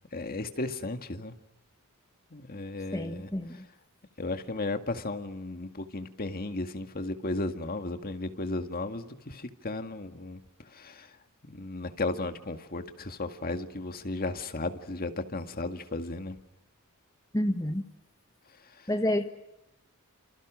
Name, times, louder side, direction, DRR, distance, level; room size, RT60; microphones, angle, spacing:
voice 1, 0.1-1.3 2.3-3.3 4.2-10.4 10.7-11.1 11.5-16.4, left 2 dB, 45° left, 7 dB, 1.9 m, -35 dB
voice 2, 2.9-3.6 17.3-17.8 18.9-19.3, left 1 dB, 15° left, 6 dB, 1.3 m, -28 dB
28.5 x 28.0 x 6.3 m, 0.90 s
head